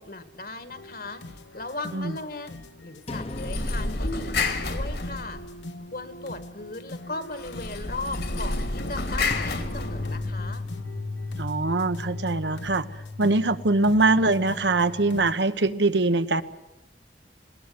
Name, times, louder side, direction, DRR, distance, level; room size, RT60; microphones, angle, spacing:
voice 1, 0.0-5.4 5.9-10.6, left 2 dB, 55° left, 10 dB, 1.7 m, -37 dB
sound 1, 0.7-15.3, left 1 dB, 85° left, 1.1 m, -43 dB
sound 2, 3.1-6.2 6.5-6.7 9.3-15.3, left 3 dB, 35° left, 0.9 m, -37 dB
sound 3, 3.2-5.7 7.4-10.5, left 3 dB, 70° left, 2.7 m, -30 dB
voice 2, 11.4-12.9 13.2-16.4, right 2 dB, 75° right, 11 dB, 1.0 m, -23 dB
20.5 x 18.5 x 9.6 m, 0.95 s
head